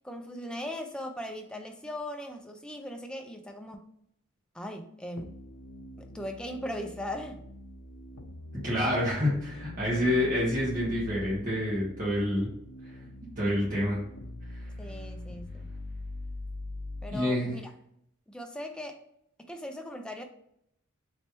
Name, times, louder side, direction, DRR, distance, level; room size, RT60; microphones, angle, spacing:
voice 1, 0.0-3.9 4.5-5.4 6.0-7.5 14.8-15.7 17.0-17.7 18.3-19.0 19.4-20.2, left 1 dB, 5° left, 3 dB, 0.4 m, -39 dB
sound 1, 5.2-17.2, left 1 dB, 80° left, 0.5 m, -43 dB
voice 2, 8.6-12.5 12.8-13.0 13.4-14.0 17.1-17.5, left 1 dB, 45° right, -7 dB, 1.4 m, -27 dB
3.2 x 3.1 x 2.9 m, 0.73 s
head